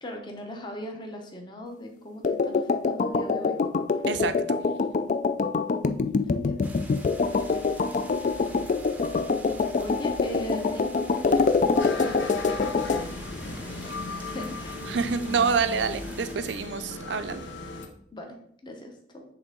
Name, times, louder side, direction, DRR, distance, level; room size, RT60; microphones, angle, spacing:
voice 1, 0.0-3.6 5.8-6.7 7.2-7.7 9.8-13.9 14.2-14.8 18.1-18.4 18.6-19.2, equal, 25° left, 3 dB, 0.9 m, -40 dB
sound 1, 2.2-13.0, left 4 dB, 40° left, 0.3 m, -25 dB
voice 2, 4.1-4.6 14.9-17.5, right 5 dB, 65° right, 11 dB, 0.4 m, -27 dB
sound 2, 6.6-16.3, right 1 dB, 10° right, 0.6 m, -44 dB
sound 3, 11.8-17.9, left 3 dB, 75° left, 0.9 m, -37 dB
7.9 x 3.5 x 3.8 m, 0.67 s
head